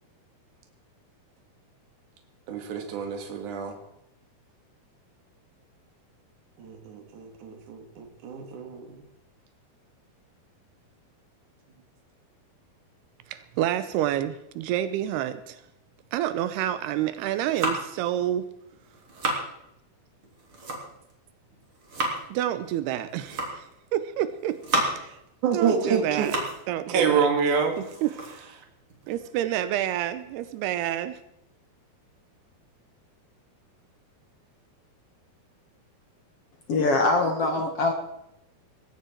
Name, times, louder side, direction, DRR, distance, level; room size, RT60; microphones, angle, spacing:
voice 1, 2.5-3.7 6.6-9.0 25.4-26.3 26.9-27.8, right 6 dB, 55° right, 4 dB, 3.3 m, -27 dB
voice 2, 13.3-15.6 16.1-18.4 22.3-23.7 23.9-25.2 25.5-26.3 26.7-27.3 27.8-28.1 29.1-31.1, right 12 dB, 85° right, 12 dB, 2.8 m, -28 dB
sound 1, 17.2-18.0 18.7-19.5 20.2-21.1 21.5-22.2 23.0-23.7 24.3-25.1 25.6-26.7 27.0-27.1 27.5-29.3, right 2 dB, 35° right, 3.7 m, -32 dB
voice 3, 36.7-37.9, left 2 dB, 60° left, 4 dB, 1.6 m, -23 dB
20.0 x 16.0 x 4.5 m, 0.81 s
omnidirectional pair, 4.6 m